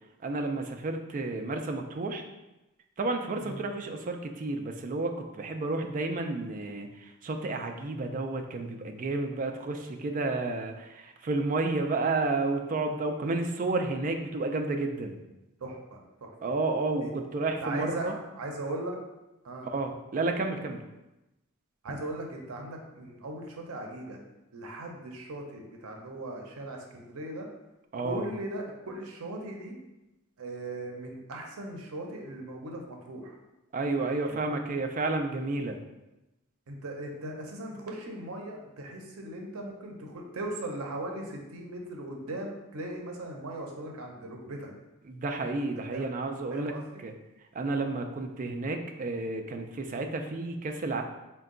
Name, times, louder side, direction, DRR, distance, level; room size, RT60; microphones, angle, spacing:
voice 1, 0.2-2.2 3.0-15.2 16.4-18.1 19.6-20.8 27.9-28.3 33.7-35.8 45.0-46.7 47.0-47.1 47.5-51.0, right 3 dB, 40° right, 5 dB, 0.4 m, -31 dB
voice 2, 15.6-16.3 17.0-17.1 17.6-19.0 19.4-19.7 21.8-24.2 24.5-27.5 28.0-29.8 30.4-33.4 34.3-34.4 36.7-44.7 45.9-46.1 46.5-47.0, right 1 dB, 90° right, 2 dB, 0.6 m, -38 dB
4.4 x 2.2 x 3.7 m, 0.98 s
head